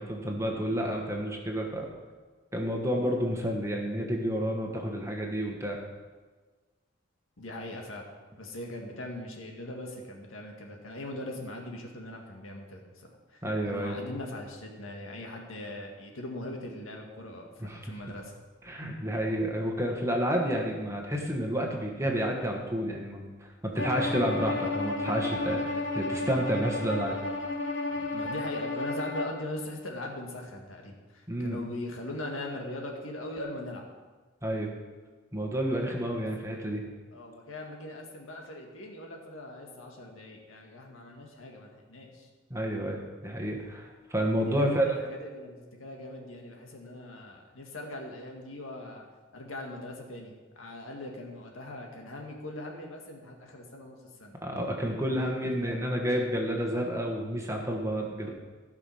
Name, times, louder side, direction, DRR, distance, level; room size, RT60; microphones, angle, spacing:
voice 1, 0.0-1.9 2.5-5.8 13.4-14.0 17.6-17.8 18.6-27.2 31.3-31.6 34.4-34.7 35.3-36.8 42.5-44.9 54.4-58.3, equal, 15° right, 1 dB, 1.4 m, -30 dB
voice 2, 7.4-8.1 8.4-18.3 27.9-33.8 36.1-36.3 37.1-42.3 44.4-49.0 49.3-54.3 55.1-55.8, left 1 dB, 85° left, 1 dB, 1.9 m, -41 dB
Bowed string instrument, 23.8-29.4, left 2 dB, 70° left, 1.3 m, -32 dB
15.5 x 5.9 x 5.6 m, 1.3 s
head